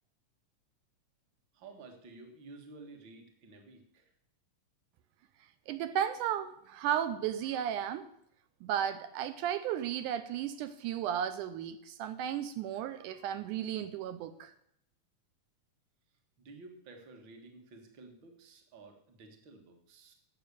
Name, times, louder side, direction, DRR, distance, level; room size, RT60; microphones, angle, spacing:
voice 1, 1.5-4.1 16.4-20.1, right 3 dB, 45° right, 4 dB, 1.9 m, -52 dB
voice 2, 5.7-8.1 8.6-14.5, right 10 dB, 80° right, 11 dB, 2.0 m, -34 dB
11.5 x 7.6 x 6.8 m, 0.74 s
omnidirectional pair, 3.9 m